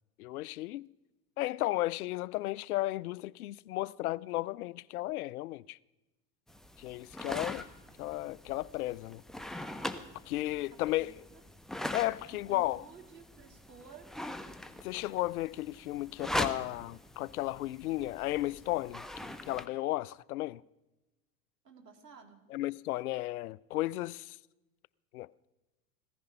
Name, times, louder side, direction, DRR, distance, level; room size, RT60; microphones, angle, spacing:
voice 1, 0.2-0.9 1.4-5.8 6.8-7.6 8.0-9.2 10.3-11.2 11.9-12.8 14.8-19.0 19.5-20.6 22.5-24.4 25.1-25.3, left 17 dB, 65° left, 0.5 m, -34 dB
sound 1, 6.5-19.7, left 1 dB, ahead, 0.9 m, -42 dB
voice 2, 10.7-11.2 12.3-14.1 21.6-22.4, right 6 dB, 85° right, 2.3 m, -54 dB
16.0 x 14.0 x 5.5 m
figure-of-eight pair, 80°, 48 cm